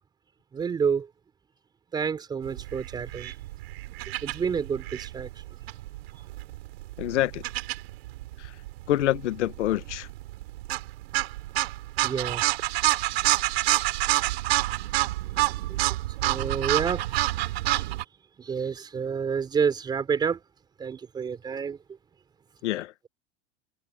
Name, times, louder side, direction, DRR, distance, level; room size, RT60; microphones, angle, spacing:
voice 1, 0.5-1.1 1.9-3.4 4.2-5.4 12.0-12.5 13.2-13.7 15.2-17.9 18.4-20.4 20.8-21.8, right 6 dB, 10° right, 3.9 m, -30 dB
sound 1, 2.5-18.0, right 17 dB, 60° right, 4.1 m, -29 dB
voice 2, 7.0-7.4 8.9-10.1 22.6-22.9, left 14 dB, 80° left, 1.4 m, -26 dB
supercardioid pair, 175°, 35 cm